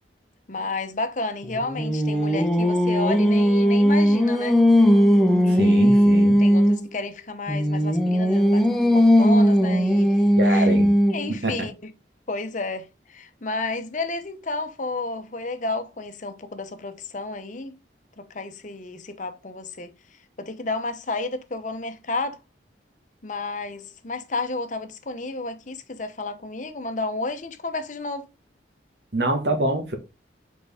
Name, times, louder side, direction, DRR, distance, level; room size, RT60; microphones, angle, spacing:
voice 1, 0.5-4.6 5.4-8.7 8.9-11.9 12.3-17.8 18.2-19.9 20.4-22.4 23.2-28.3, left 3 dB, 45° left, 0.9 m, -32 dB
Singing, 1.4-6.9 7.5-11.4, equal, ahead, 0.9 m, -18 dB
voice 2, 5.5-6.4 10.4-10.9 11.3-11.7 29.1-30.0, right 2 dB, 65° right, 1.7 m, -25 dB
6.7 x 4.6 x 3.6 m
head